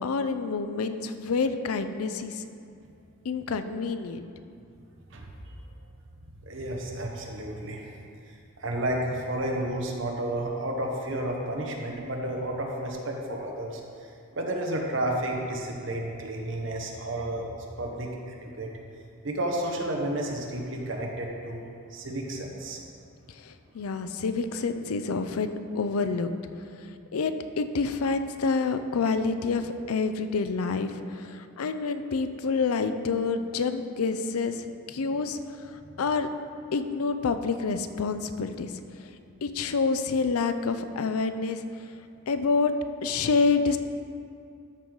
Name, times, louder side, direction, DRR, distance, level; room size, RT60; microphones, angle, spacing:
voice 1, 0.0-2.5 3.2-4.3 23.3-26.3 26.7-36.3 36.7-39.1 39.4-41.9 42.3-42.7 43.0-43.8, left 4 dB, 90° left, 9 dB, 0.5 m, -28 dB
voice 2, 5.1-5.6 6.4-7.9 8.3-17.5 17.8-18.7 19.2-21.6 21.9-22.8 35.8-36.0, right 1 dB, 60° right, 0 dB, 1.1 m, -32 dB
13.0 x 4.7 x 3.9 m, 2.4 s
head